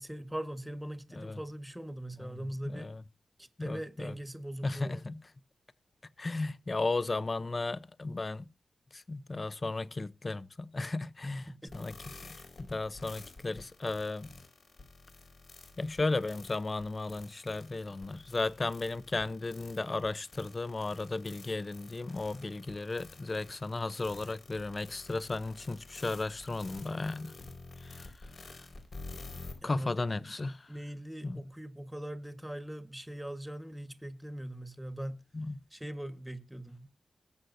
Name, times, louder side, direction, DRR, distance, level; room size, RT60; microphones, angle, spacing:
voice 1, 0.0-2.9 3.4-5.0 11.6-12.2 29.6-29.9 30.2-30.3 30.7-35.2 35.7-36.9, right 1 dB, 5° right, 1.4 m, -41 dB
voice 2, 2.6-3.0 3.6-4.1 4.6-5.2 6.2-8.4 8.9-11.5 11.7-11.9 12.6-14.3 15.8-27.3 27.8-28.3 29.6-30.7 31.2-31.4 35.3-35.5, left 3 dB, 35° left, 0.6 m, -35 dB
sound 1, 11.7-29.5, left 3 dB, 60° left, 4.8 m, -50 dB
21.0 x 7.8 x 2.7 m
cardioid pair, 80°, 0 cm